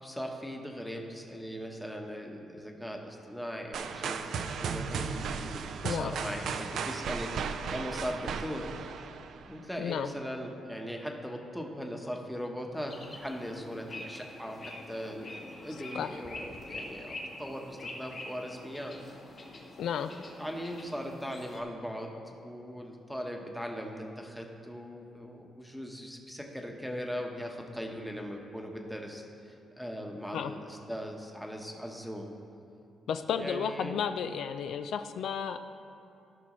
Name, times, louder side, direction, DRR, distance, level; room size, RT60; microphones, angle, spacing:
voice 1, 0.0-8.7 9.5-19.0 20.1-32.3 33.4-34.0, equal, ahead, 1 dB, 1.0 m, -39 dB
sound 1, 3.7-9.6, right 6 dB, 75° right, 0.4 m, -35 dB
sound 2, 12.9-21.6, left 2 dB, 45° left, 1.6 m, -45 dB
voice 2, 19.8-20.2 30.3-30.5 33.1-35.6, left 7 dB, 75° left, 9 dB, 0.3 m, -33 dB
16.0 x 6.1 x 3.1 m, 2.6 s
cardioid pair, 110°, 0 cm